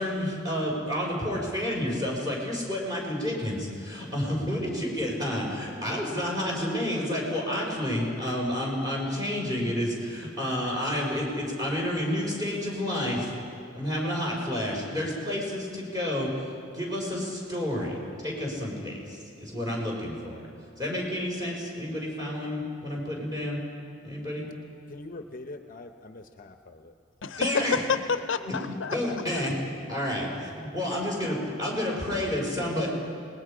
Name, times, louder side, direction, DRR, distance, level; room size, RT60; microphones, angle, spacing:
voice 1, 0.0-13.3 13.7-16.3 16.7-18.0 18.2-20.4 20.8-23.6 24.0-24.5 27.4-27.8 28.4-28.6 28.9-29.5 29.9-32.9, left 1 dB, 20° right, 5.2 m, -30 dB
voice 2, 24.9-26.9, left 2 dB, 45° left, 0.8 m, -43 dB
voice 3, 27.2-29.2, left 5 dB, 70° left, 0.7 m, -29 dB
26.5 x 20.0 x 5.1 m
head